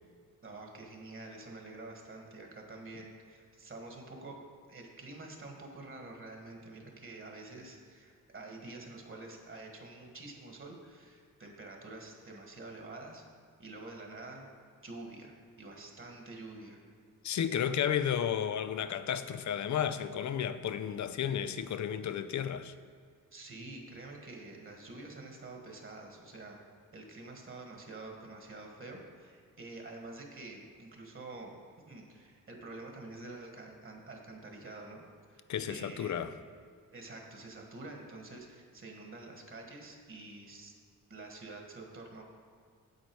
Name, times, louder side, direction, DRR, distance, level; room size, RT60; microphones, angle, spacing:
voice 1, 0.4-4.4 4.7-13.2 13.6-14.5 14.8-16.8 23.3-26.6 26.9-31.6 31.9-35.0 35.3-36.2 36.9-40.7 41.1-42.2, right 2 dB, 40° right, 1.7 m, -47 dB
voice 2, 17.2-22.7 35.5-36.3, left 9 dB, 60° left, 0.5 m, -32 dB
8.7 x 8.1 x 4.7 m
wide cardioid pair, 130°, 33 cm